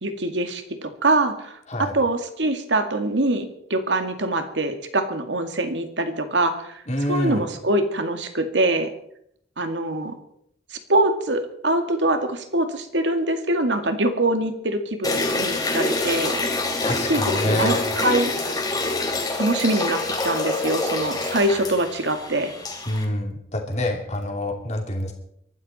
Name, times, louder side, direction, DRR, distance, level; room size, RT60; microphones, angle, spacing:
voice 1, 0.0-1.6 1.9-6.8 7.1-8.9 9.6-10.1 10.9-16.4 16.9-18.3 19.3-22.5, right 1 dB, 85° right, 7 dB, 2.1 m, -24 dB
voice 2, 6.9-7.4 16.8-17.8 22.9-25.1, left 1 dB, 40° left, 2 dB, 2.9 m, -26 dB
sound 1, 15.0-23.0, left 2 dB, 20° left, 3.1 m, -26 dB
24.0 x 12.5 x 4.3 m, 0.71 s
head